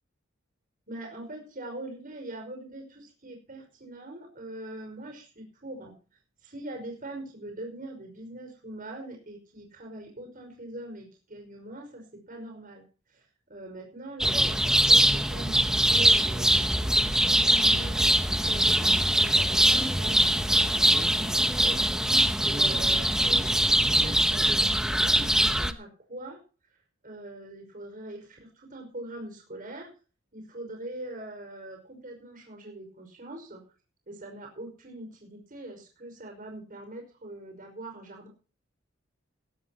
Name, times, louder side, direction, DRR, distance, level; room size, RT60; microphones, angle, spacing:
voice 1, 0.9-5.9 6.4-12.8 13.1-26.4 27.0-29.9 30.3-33.6 34.1-38.3, right 1 dB, 45° right, 3 dB, 5.4 m, -42 dB
sound 1, 14.2-25.7, right 1 dB, 5° right, 0.9 m, -22 dB
17.0 x 16.5 x 2.9 m, 0.37 s
head